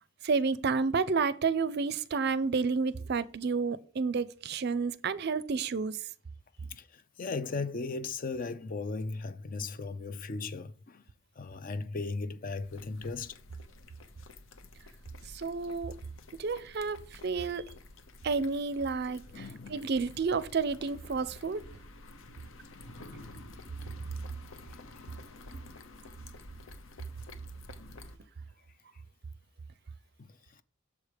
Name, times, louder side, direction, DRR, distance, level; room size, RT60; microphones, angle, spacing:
voice 1, 0.2-6.0 15.3-16.0 16.4-17.6 18.2-21.6, right 4 dB, 50° right, 0.5 m, -30 dB
voice 2, 6.6-11.1 11.4-13.4 19.3-19.9, left 3 dB, 40° left, 0.5 m, -37 dB
sound 1, 12.6-28.2, left 2 dB, 75° left, 0.8 m, -51 dB
7.0 x 4.9 x 4.7 m
head